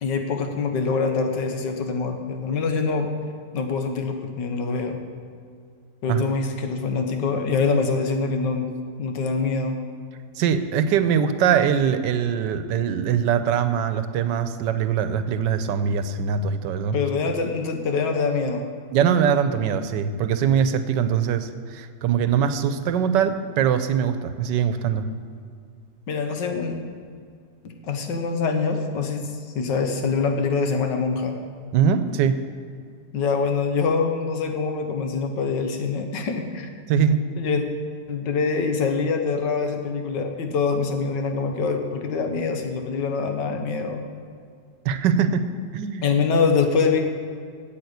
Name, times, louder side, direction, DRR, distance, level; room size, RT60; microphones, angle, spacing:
voice 1, 0.0-3.1 3.5-5.0 6.0-8.7 9.0-9.8 16.9-18.6 26.1-26.8 27.6-29.2 29.6-31.4 33.1-36.7 37.4-37.6 38.1-44.0 46.0-47.0, left 4 dB, 85° left, 5 dB, 1.7 m, -24 dB
voice 2, 10.4-17.0 18.9-25.1 31.7-32.4 36.9-37.2 44.8-45.4 45.7-46.0, right 7 dB, 85° right, 11 dB, 1.3 m, -22 dB
8.7 x 8.3 x 8.0 m, 2.2 s
omnidirectional pair, 1.8 m